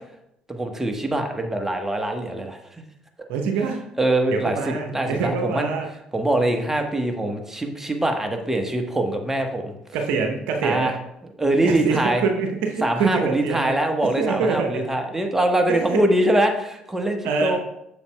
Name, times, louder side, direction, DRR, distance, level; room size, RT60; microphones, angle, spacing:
voice 1, 0.5-2.6 4.0-5.7 6.1-9.7 10.6-10.9 11.4-12.2 12.8-17.6, right 1 dB, 10° right, 4 dB, 1.1 m, -23 dB
voice 2, 3.3-3.8 4.3-5.9 9.9-10.9 11.6-13.7 14.2-14.8 15.7-16.0 17.2-17.6, right 5 dB, 70° right, 3 dB, 0.7 m, -25 dB
7.1 x 6.8 x 2.2 m, 0.81 s
hypercardioid pair, 50°, 3 cm